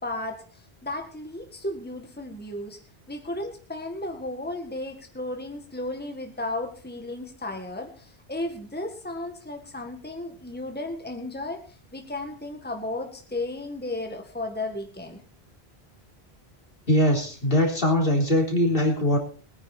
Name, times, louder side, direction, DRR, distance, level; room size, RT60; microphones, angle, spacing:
voice 1, 0.0-2.8 3.1-15.2, left 2 dB, 10° left, 3 dB, 1.8 m, -34 dB
voice 2, 16.9-19.2, left 1 dB, 60° left, 0 dB, 3.9 m, -21 dB
21.5 x 9.8 x 4.3 m, 0.39 s
omnidirectional pair, 1.1 m